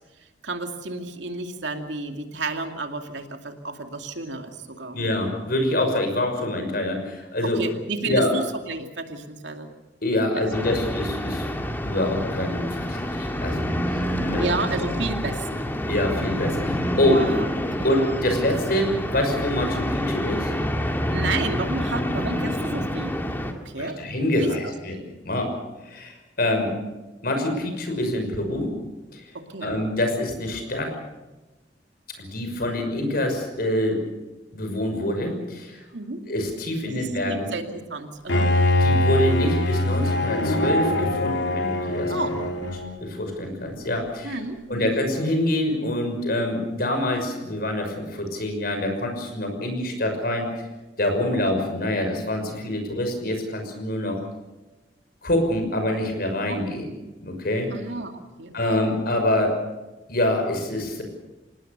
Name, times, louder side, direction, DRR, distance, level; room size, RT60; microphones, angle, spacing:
voice 1, 0.4-5.0 7.4-9.7 10.3-10.8 14.3-15.7 17.0-17.5 17.8-17.9 21.1-23.2 23.5-24.0 24.3-24.5 29.3-29.7 35.9-36.2 36.8-38.5 42.1-42.4 44.2-44.9 56.4-56.6 57.7-58.5 58.8-59.0, right 3 dB, 80° right, 5 dB, 2.5 m, -31 dB
voice 2, 4.9-7.6 8.0-8.3 10.0-11.5 11.8-13.6 13.9-14.5 14.8-15.0 15.9-17.2 17.8-20.5 23.8-25.5 25.8-26.7 27.2-28.7 29.1-29.2 29.6-31.0 32.2-34.0 34.5-35.8 36.3-37.5 38.8-42.4 43.0-44.4 44.7-50.5 51.0-54.2 55.2-56.9 57.2-57.7 58.5-59.6 60.1-61.0, left 1 dB, 55° left, 5 dB, 6.0 m, -25 dB
sound 1, 10.5-23.5, equal, 10° left, 2.1 m, -27 dB
Bowed string instrument, 38.3-43.1, left 1 dB, 90° left, 3.2 m, -23 dB
26.5 x 19.5 x 6.8 m, 1.1 s
head